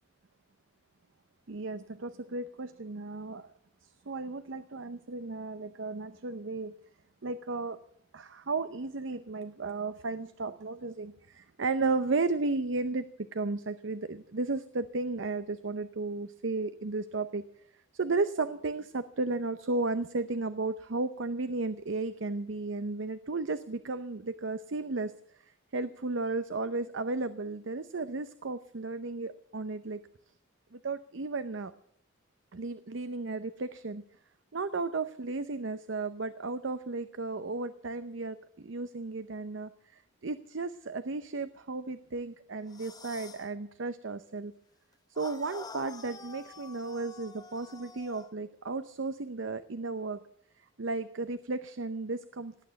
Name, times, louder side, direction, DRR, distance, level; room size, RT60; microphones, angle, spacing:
voice 1, 1.5-3.5 4.1-6.7 7.2-7.8 8.1-13.0 13.3-17.4 17.9-25.1 25.7-30.0 30.7-31.7 32.5-34.0 34.5-44.5 45.1-50.2 50.8-52.7, right 3 dB, 65° right, 12 dB, 0.7 m, -34 dB
sound 1, 42.7-43.5 45.2-48.3, left 4 dB, 20° left, 0.8 m, -48 dB
18.5 x 9.1 x 8.1 m, 0.67 s
head